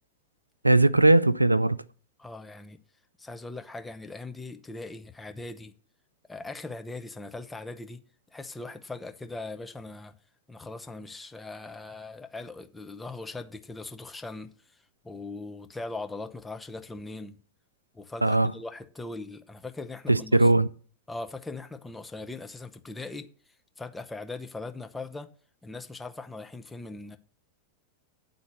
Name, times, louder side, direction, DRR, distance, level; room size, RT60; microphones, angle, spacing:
voice 1, 0.6-1.8 18.2-18.5 20.1-20.7, right 2 dB, 85° right, 0.3 m, -19 dB
voice 2, 2.2-2.8 3.2-5.7 6.3-8.0 8.3-10.1 10.5-17.4 17.9-20.5 21.1-23.3 23.8-25.3 25.6-27.2, left 3 dB, 10° left, 0.7 m, -40 dB
9.6 x 4.0 x 7.2 m
figure-of-eight pair, 90°, 0 cm